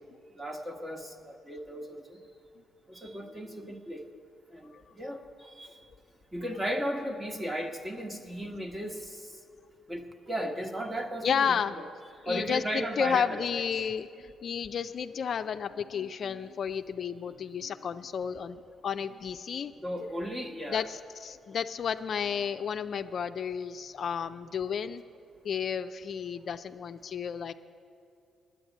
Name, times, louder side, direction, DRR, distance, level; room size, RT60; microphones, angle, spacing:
voice 1, 0.4-2.2 2.9-4.0 4.5-4.7 5.0-5.7 6.3-9.2 9.9-11.5 12.3-13.6 19.8-20.8, equal, 20° right, 4 dB, 1.3 m, -35 dB
voice 2, 11.2-11.8 12.3-19.7 20.7-25.0 25.4-27.5, left 7 dB, 55° left, 9 dB, 0.4 m, -32 dB
9.8 x 8.7 x 9.2 m, 2.5 s
cardioid pair, 90°, 0 cm